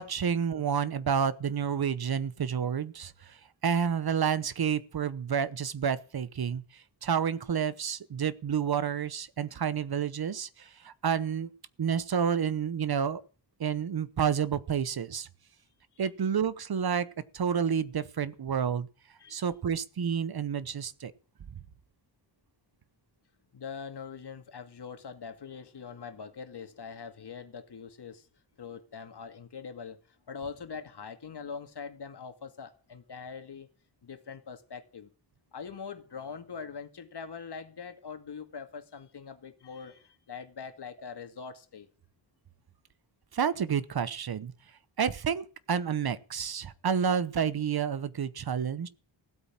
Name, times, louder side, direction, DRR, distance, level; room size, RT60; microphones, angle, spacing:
voice 1, 0.0-3.4 3.6-11.5 11.8-13.2 13.6-15.3 16.0-17.1 17.3-18.9 19.3-21.1 43.3-44.5 45.0-48.9, right 7 dB, 55° right, 0.9 m, -29 dB
voice 2, 23.5-28.3 28.6-30.0 30.3-33.7 34.0-35.1 35.5-41.9, left 6 dB, 60° left, 2.2 m, -43 dB
16.0 x 8.6 x 7.4 m
wide cardioid pair, 115°, 45 cm